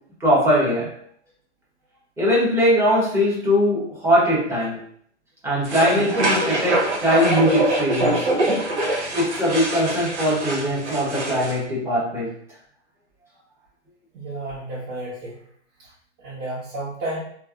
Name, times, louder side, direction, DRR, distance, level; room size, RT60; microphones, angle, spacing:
voice 1, 0.2-0.9 2.2-4.8 5.4-8.3 9.1-12.3, equal, 5° right, -7 dB, 0.9 m, -21 dB
sound 1, 5.6-11.5, right 2 dB, 70° right, 1.1 m, -24 dB
voice 2, 14.1-15.4 16.2-17.2, right 1 dB, 45° right, -10 dB, 1.2 m, -31 dB
3.3 x 2.0 x 2.4 m, 0.63 s
hypercardioid pair, 125°, 36 cm